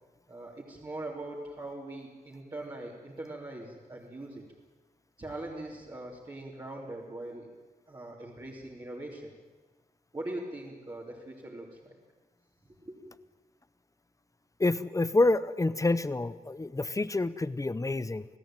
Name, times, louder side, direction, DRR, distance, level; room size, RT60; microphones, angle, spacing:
voice 1, 0.3-4.4 5.2-7.5 7.9-9.3 10.1-11.9 12.7-13.1, right 1 dB, 30° right, -4 dB, 3.3 m, -41 dB
voice 2, 14.6-18.3, left 2 dB, 20° left, 15 dB, 0.8 m, -27 dB
28.5 x 18.0 x 9.1 m, 1.2 s
wide cardioid pair, 160°, 15 cm